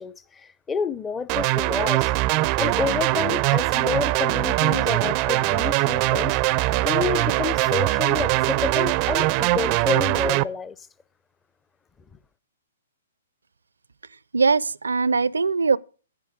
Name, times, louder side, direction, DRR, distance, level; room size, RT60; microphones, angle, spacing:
voice 1, 0.0-2.1 2.6-6.4 6.8-10.7, left 5 dB, 15° left, 0.6 m, -29 dB
sound 1, 1.3-10.4, right 19 dB, 35° right, 0.5 m, -22 dB
voice 2, 14.3-15.8, right 4 dB, 80° right, 0.6 m, -21 dB
10.5 x 10.0 x 5.0 m
figure-of-eight pair, 125°, 0 cm